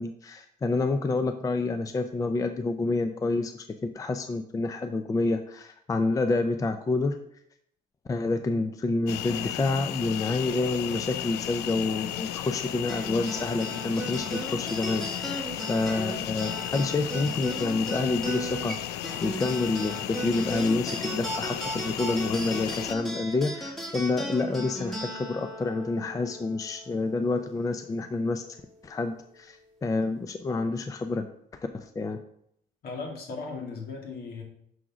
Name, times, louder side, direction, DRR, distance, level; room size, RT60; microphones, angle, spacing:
voice 1, 0.0-7.2 8.1-28.4 28.8-31.3 31.5-32.2, left 3 dB, 20° left, 8 dB, 0.4 m, -28 dB
sound 1, 9.1-23.0, left 12 dB, 80° left, 0.4 m, -34 dB
sound 2, 12.9-27.6, right 1 dB, ahead, 2.1 m, -37 dB
voice 2, 32.8-34.4, left 4 dB, 65° left, 1 dB, 2.0 m, -37 dB
6.3 x 3.7 x 6.0 m, 0.71 s
cardioid pair, 110°, 17 cm